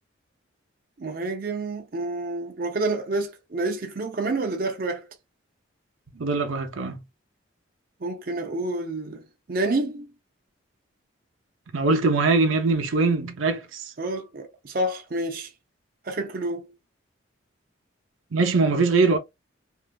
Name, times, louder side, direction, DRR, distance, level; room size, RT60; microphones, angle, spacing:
voice 1, 1.0-5.1 8.0-10.1 14.0-15.5 16.0-16.7, right 2 dB, 45° right, 0.5 m, -29 dB
voice 2, 6.1-7.0 11.7-13.9 18.3-19.2, right 3 dB, 90° right, 0.7 m, -22 dB
3.2 x 2.5 x 2.3 m
head